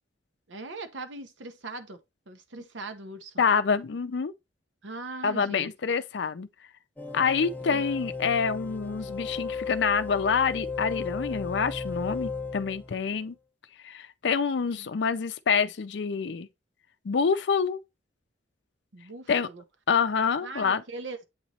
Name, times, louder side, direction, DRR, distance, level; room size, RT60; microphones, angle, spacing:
voice 1, 0.5-2.0 2.3-3.3 4.8-5.7 7.7-7.9 14.8-14.9 18.9-19.6 20.4-21.2, right 3 dB, 80° right, 0.9 m, -40 dB
voice 2, 3.4-4.3 5.2-6.5 7.1-13.3 13.8-16.5 17.0-17.8 19.3-19.5 19.9-20.8, left 5 dB, 65° left, 0.5 m, -26 dB
sound 1, 7.0-13.1, left 4 dB, 10° left, 0.6 m, -35 dB
8.0 x 3.0 x 4.1 m
head